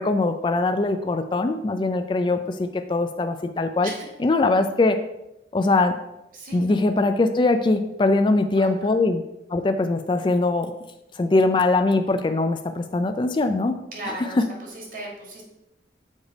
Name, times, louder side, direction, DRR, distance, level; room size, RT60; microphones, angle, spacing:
voice 1, 0.0-3.9 4.2-5.0 5.5-6.0 6.5-9.2 9.5-10.7 11.2-13.8 14.1-14.5, left 2 dB, 25° left, 8 dB, 0.3 m, -22 dB
voice 2, 6.3-6.8 8.5-8.7 13.9-14.4 14.7-15.4, right 2 dB, 50° right, -1 dB, 1.6 m, -36 dB
7.2 x 3.3 x 5.2 m, 0.91 s
head